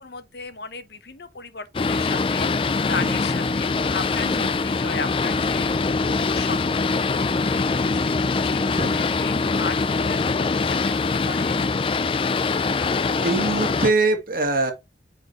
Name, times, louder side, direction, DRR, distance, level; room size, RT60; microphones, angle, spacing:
voice 1, 0.0-6.8 7.2-11.6, left 4 dB, 65° left, 0.9 m, -36 dB
Boat Water vehicle, 1.7-13.9, left 4 dB, 30° left, 0.4 m, -23 dB
sound 1, 3.4-9.9, equal, 5° right, 3.2 m, -46 dB
voice 2, 13.2-14.7, right 3 dB, 50° right, 1.9 m, -24 dB
8.9 x 4.2 x 3.1 m
head